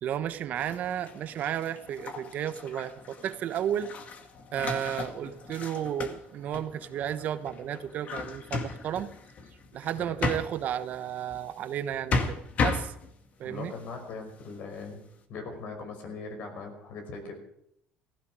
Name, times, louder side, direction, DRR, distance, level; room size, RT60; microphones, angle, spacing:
voice 1, 0.0-3.9 4.5-9.1 9.7-12.9 13.4-13.7, right 10 dB, 55° right, 11 dB, 1.2 m, -33 dB
sound 1, 0.5-11.5 11.8-13.3 13.8-14.5, left 4 dB, 45° left, 2.1 m, -36 dB
voice 2, 13.4-15.0 15.3-17.3, left 4 dB, 65° left, 5 dB, 5.5 m, -40 dB
16.5 x 15.5 x 5.0 m, 0.73 s
cardioid pair, 105°, 3 cm